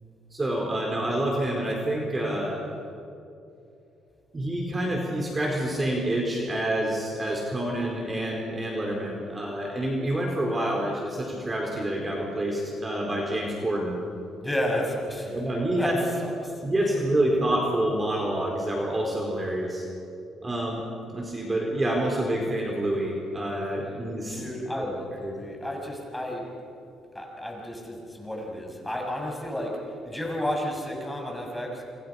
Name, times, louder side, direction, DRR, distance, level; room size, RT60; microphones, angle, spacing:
voice 1, 0.3-2.6 4.3-14.0 15.3-15.9 16.6-19.8 20.4-20.8 21.1-24.5 24.8-24.9 25.2-25.3, right 1 dB, 25° right, 0 dB, 4.4 m, -27 dB
voice 2, 14.4-15.4 15.8-16.5 16.8-17.0 17.3-17.4 24.3-26.5 27.1-29.8 30.0-31.8, left 1 dB, 5° left, 0 dB, 6.7 m, -32 dB
28.0 x 27.0 x 5.9 m, 2.6 s
cardioid pair, 90°, 0 cm